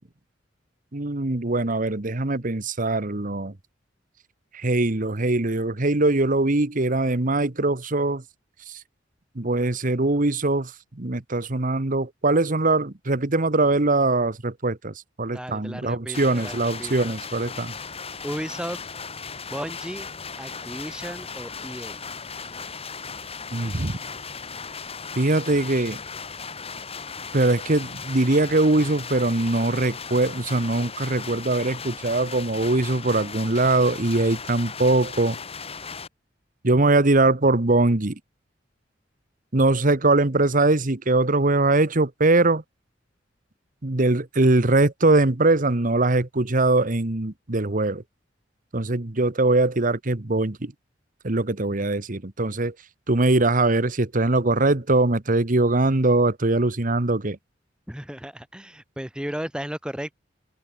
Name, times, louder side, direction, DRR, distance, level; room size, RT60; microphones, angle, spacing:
voice 1, 0.9-3.5 4.5-8.2 8.7-8.8 9.3-17.7 23.5-24.0 25.2-26.0 27.3-35.4 36.6-38.2 39.5-42.6 43.8-48.0 48.7-50.7 51.2-52.7 53.1-57.4, right 2 dB, 45° right, 1.3 m, -22 dB
voice 2, 15.3-17.2 18.2-18.8 19.5-20.1 20.4-22.0 57.9-60.1, equal, 5° right, 1.4 m, -34 dB
sound 1, 16.1-36.1, left 5 dB, 35° left, 4.0 m, -37 dB
head